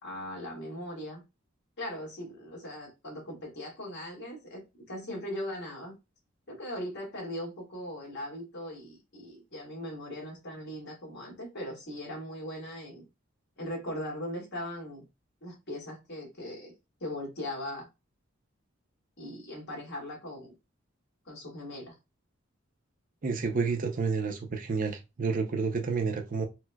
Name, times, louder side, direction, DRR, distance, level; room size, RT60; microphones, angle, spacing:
voice 1, 0.0-1.2 1.8-6.0 6.5-13.0 13.6-15.0 15.4-16.7 17.0-17.9 19.2-20.5 21.2-21.9, left 1 dB, 55° left, 1.7 m, -39 dB
voice 2, 23.2-26.5, right 4 dB, 40° right, 0.5 m, -30 dB
4.4 x 2.2 x 2.2 m
head